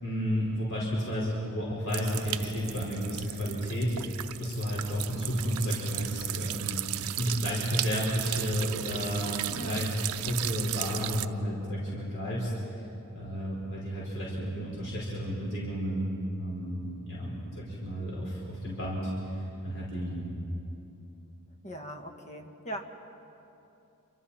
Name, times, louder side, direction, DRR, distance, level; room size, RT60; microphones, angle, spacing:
voice 1, 0.0-3.9 4.4-9.9 10.3-12.5 13.1-16.1 16.4-19.1 19.6-20.3, equal, 60° left, -6 dB, 5.0 m, -32 dB
sound 1, 1.9-11.2, right 13 dB, 80° right, 0.5 m, -36 dB
voice 2, 9.5-9.9 21.6-22.8, right 1 dB, 35° left, 3 dB, 1.7 m, -40 dB
28.0 x 25.5 x 4.4 m, 2.9 s
head